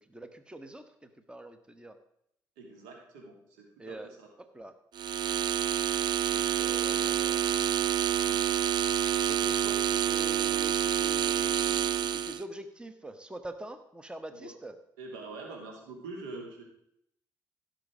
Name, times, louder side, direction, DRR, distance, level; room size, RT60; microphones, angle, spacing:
voice 1, 0.0-2.0 3.8-4.1 4.4-4.7 6.3-7.5 9.2-14.7, right 1 dB, 10° right, 9 dB, 1.2 m, -45 dB
voice 2, 2.6-4.3 14.3-14.5 15.0-16.6, right 3 dB, 75° right, 1 dB, 2.9 m, -44 dB
sound 1, 5.0-12.4, right 10 dB, 50° right, 0.5 m, -28 dB
16.0 x 6.5 x 4.8 m, 0.76 s
hypercardioid pair, 50°, 10 cm